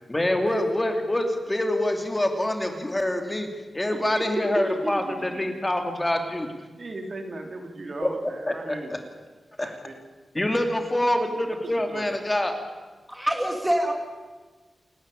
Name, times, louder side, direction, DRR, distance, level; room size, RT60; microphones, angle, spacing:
voice 1, 0.1-6.5 8.5-9.0 9.6-9.8 10.3-12.6, left 1 dB, 15° left, 5 dB, 2.7 m, -26 dB
voice 2, 4.1-5.4 6.8-9.0 9.6-9.9 11.6-12.1, right 1 dB, 50° right, 4 dB, 3.3 m, -35 dB
voice 3, 13.1-13.9, equal, 5° right, 3 dB, 2.3 m, -25 dB
28.5 x 12.0 x 10.0 m, 1.3 s
wide cardioid pair, 100°, 0 cm